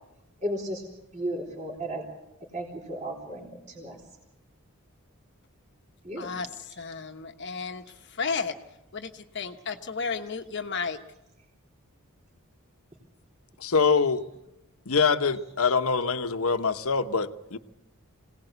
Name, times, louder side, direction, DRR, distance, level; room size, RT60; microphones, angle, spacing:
voice 1, 0.4-0.8 1.1-2.0 2.4-4.0 6.0-6.3, right 1 dB, 35° right, -1 dB, 3.8 m, -34 dB
voice 2, 6.2-6.5 6.8-7.8 8.1-8.5 8.9-11.0, left 5 dB, 55° left, 6 dB, 1.2 m, -33 dB
voice 3, 13.6-14.2 14.9-17.6, left 5 dB, 75° left, 9 dB, 1.1 m, -24 dB
26.0 x 18.5 x 8.1 m, 0.94 s
head